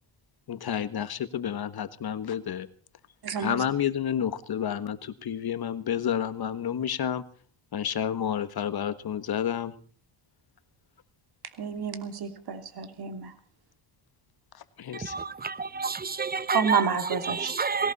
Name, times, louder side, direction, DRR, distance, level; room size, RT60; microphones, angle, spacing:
voice 1, 0.5-2.7 3.4-7.2 7.7-9.7 14.8-15.1, left 9 dB, 55° left, 1.6 m, -30 dB
voice 2, 3.2-3.7 11.6-13.3 16.5-17.5, right 6 dB, 55° right, 2.9 m, -29 dB
voice 3, 14.9-16.8 17.2-17.9, right 4 dB, 20° right, 0.8 m, -29 dB
19.5 x 17.5 x 4.3 m
cardioid pair, 90°, 45 cm